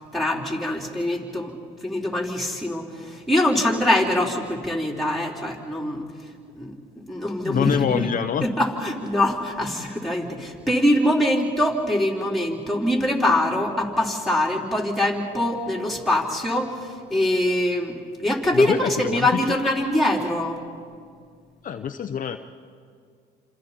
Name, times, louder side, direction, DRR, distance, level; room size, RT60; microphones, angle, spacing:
voice 1, 0.1-1.5 1.8-6.1 6.6-6.7 7.1-8.0 8.4-18.0 18.2-20.6, left 1 dB, ahead, -3 dB, 4.2 m, -23 dB
voice 2, 7.4-8.4 18.5-19.6 21.6-22.4, left 8 dB, 45° left, 6 dB, 0.8 m, -25 dB
28.5 x 27.0 x 4.3 m, 2.1 s
cardioid pair, 100°, 19 cm